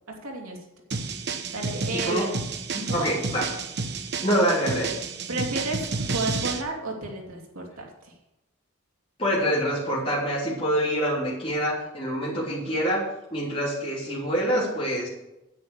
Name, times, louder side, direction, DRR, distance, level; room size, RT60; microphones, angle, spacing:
voice 1, 0.2-0.6 1.5-2.3 2.9-3.1 5.3-5.8 6.1-8.1, right 2 dB, 85° right, 0 dB, 3.0 m, -32 dB
sound 1, 0.9-6.6, right 4 dB, 50° right, 1.0 m, -31 dB
voice 2, 1.9-2.2 2.7-3.4 4.2-4.9 9.2-13.0 13.3-15.1, equal, 25° left, -6 dB, 3.5 m, -26 dB
9.7 x 9.2 x 6.8 m, 0.94 s
head